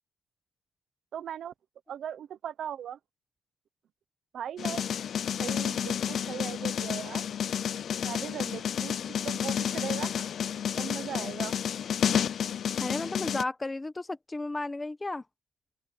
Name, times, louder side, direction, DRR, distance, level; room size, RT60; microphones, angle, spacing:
voice 1, 1.1-1.5 1.9-3.0 4.3-4.8 5.4-7.2 8.0-9.0 9.2-10.2 10.8-11.5, right 9 dB, 60° right, 0.9 m, -38 dB
sound 1, 4.6-13.4, left 8 dB, 55° left, 0.6 m, -30 dB
voice 2, 12.8-15.2, left 2 dB, 15° left, 1.0 m, -33 dB
open air
wide cardioid pair, 175°, 0 cm